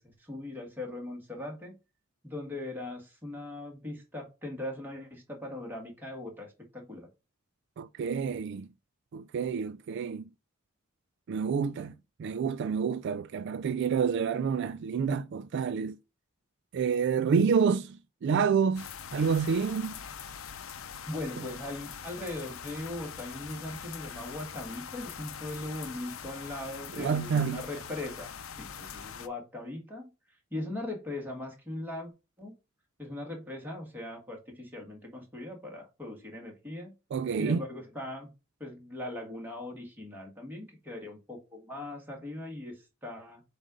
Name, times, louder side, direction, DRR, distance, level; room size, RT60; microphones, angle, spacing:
voice 1, 0.0-1.7 2.2-7.1 21.1-28.3 28.6-30.1 30.5-32.1 32.4-32.5 33.0-36.9 37.4-38.3 38.6-43.4, left 1 dB, 10° right, 1.6 m, -39 dB
voice 2, 7.8-8.7 9.1-10.3 11.3-11.9 12.2-16.0 16.7-20.0 26.9-27.7 37.1-37.6, right 6 dB, 55° right, 0.3 m, -28 dB
sound 1, 18.7-29.3, left 7 dB, 80° left, 0.6 m, -43 dB
7.5 x 2.6 x 4.9 m
head